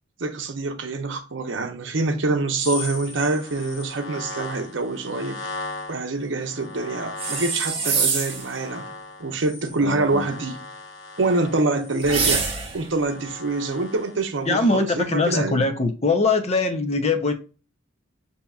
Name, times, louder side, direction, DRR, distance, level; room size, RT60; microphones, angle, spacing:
voice 1, 0.2-5.4 5.9-8.9 9.2-10.6 11.2-12.5 12.7-15.6, right 3 dB, 65° right, 0.7 m, -25 dB
sound 1, 2.6-7.7 8.0-15.1 15.4-15.5, left 3 dB, 75° left, 1.1 m, -39 dB
sound 2, 7.2-8.5 12.0-12.9, right 5 dB, 30° right, 1.1 m, -24 dB
voice 2, 9.8-10.3 14.5-17.3, left 3 dB, 35° left, 0.6 m, -22 dB
6.7 x 2.8 x 2.3 m
head